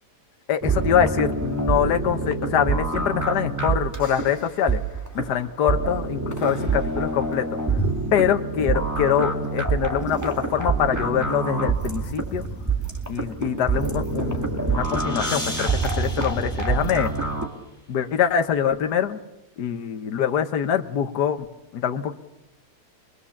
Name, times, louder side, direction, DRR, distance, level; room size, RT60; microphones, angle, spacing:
voice 1, 0.5-4.8 5.1-7.6 8.1-12.5 13.1-17.1 17.9-19.2 19.6-21.4 21.7-22.1, left 9 dB, 65° left, 7 dB, 1.6 m, -24 dB
sound 1, 0.6-17.5, right 4 dB, 10° right, 2.2 m, -26 dB
sound 2, 14.4-17.5, left 1 dB, 10° left, 6.2 m, -36 dB
26.0 x 21.5 x 7.2 m, 0.94 s
omnidirectional pair, 1.9 m